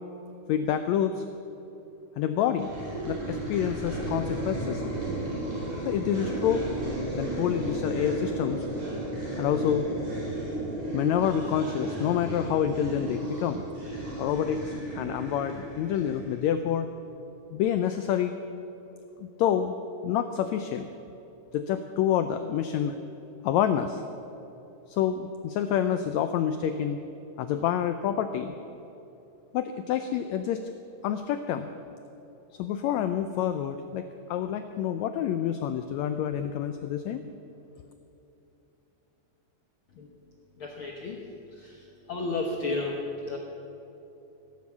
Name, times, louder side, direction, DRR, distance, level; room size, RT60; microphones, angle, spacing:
voice 1, 0.5-1.2 2.2-2.8 3.0-5.0 5.9-6.6 7.1-8.7 9.4-9.8 10.9-13.6 14.2-16.9 17.5-18.3 19.2-19.7 20.0-20.9 21.5-23.0 23.4-24.0 24.9-27.0 27.4-28.5 29.5-30.7 31.0-31.7 32.6-37.2, left 9 dB, 90° left, 9 dB, 1.6 m, -28 dB
sound 1, 2.6-16.5, right 1 dB, 50° right, 5.1 m, -34 dB
voice 2, 40.6-41.2 41.6-41.7 42.1-43.4, left 3 dB, 65° left, 0 dB, 1.3 m, -32 dB
16.5 x 8.5 x 7.2 m, 3.0 s
omnidirectional pair, 3.8 m